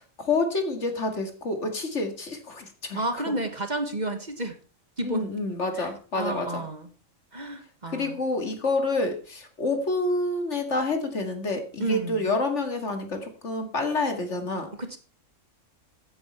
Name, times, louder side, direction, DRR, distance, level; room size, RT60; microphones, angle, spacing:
voice 1, 0.2-3.0 5.0-6.6 7.9-14.7, left 2 dB, 65° left, 5 dB, 2.6 m, -28 dB
voice 2, 2.9-4.6 5.0-5.3 5.7-6.9 7.3-8.2 11.8-12.4 14.7-15.0, right 2 dB, 35° right, 7 dB, 1.6 m, -31 dB
14.5 x 9.5 x 4.4 m, 0.38 s
omnidirectional pair, 1.3 m